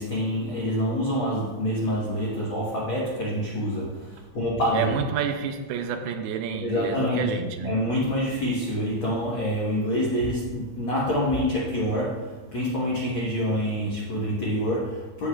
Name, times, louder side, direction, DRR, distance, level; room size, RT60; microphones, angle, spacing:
voice 1, 0.0-5.0 6.6-7.3 7.6-15.3, equal, 70° left, -5 dB, 1.1 m, -26 dB
voice 2, 4.7-7.8, right 6 dB, 85° right, 7 dB, 2.4 m, -29 dB
15.5 x 5.6 x 2.4 m, 1.3 s
omnidirectional pair, 4.4 m